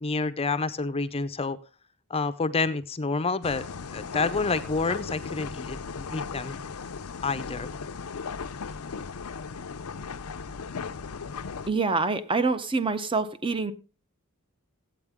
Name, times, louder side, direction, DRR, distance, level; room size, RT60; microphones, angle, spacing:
voice 1, 0.0-1.6 2.1-6.6 7.2-7.7, left 3 dB, 25° left, 0.6 m, -29 dB
sound 1, 3.4-11.7, left 5 dB, 80° left, 0.6 m, -37 dB
voice 2, 11.7-13.7, right 4 dB, 25° right, 0.8 m, -26 dB
14.5 x 9.0 x 3.6 m
head